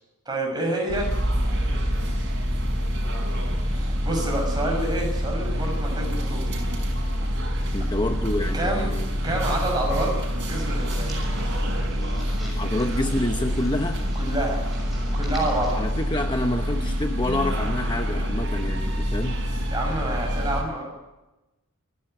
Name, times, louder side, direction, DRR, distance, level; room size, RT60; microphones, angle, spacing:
voice 1, 0.3-1.1 3.7-6.7 8.5-8.9 9.2-10.2 10.5-11.1 14.1-14.6 15.1-15.8 19.7-20.9, right 1 dB, 20° right, 1 dB, 6.1 m, -28 dB
sound 1, 0.9-20.6, equal, 55° right, 5.6 m, -26 dB
voice 2, 7.7-9.2 12.6-14.0 15.8-19.4, left 1 dB, 20° left, 5 dB, 0.9 m, -28 dB
sound 2, 10.6-15.7, equal, ahead, 6.4 m, -45 dB
28.0 x 11.0 x 9.1 m, 1.1 s
head